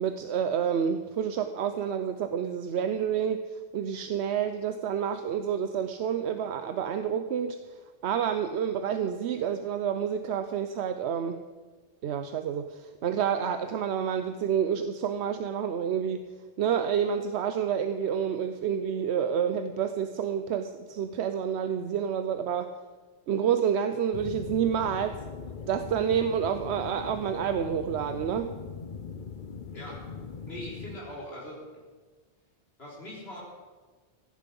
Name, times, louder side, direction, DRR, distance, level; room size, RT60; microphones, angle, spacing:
voice 1, 0.0-3.4 3.7-7.8 8.0-11.4 12.0-16.2 16.6-22.7 23.3-25.2 25.7-28.5, right 8 dB, 85° right, 9 dB, 0.9 m, -29 dB
sound 1, 24.1-31.0, left 5 dB, 50° left, 1.0 m, -40 dB
voice 2, 30.5-31.6 32.8-33.4, equal, 70° left, -4 dB, 3.8 m, -41 dB
16.5 x 10.5 x 5.3 m, 1.4 s
omnidirectional pair, 1.1 m